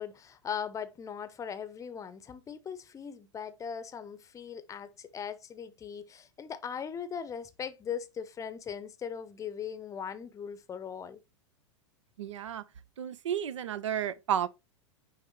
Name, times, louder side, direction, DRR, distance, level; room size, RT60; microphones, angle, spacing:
voice 1, 0.0-11.2, left 7 dB, 20° left, 0.7 m, -39 dB
voice 2, 12.2-12.6 13.0-14.5, right 9 dB, 70° right, 0.6 m, -32 dB
9.8 x 3.3 x 3.1 m
hypercardioid pair, 100°, 16 cm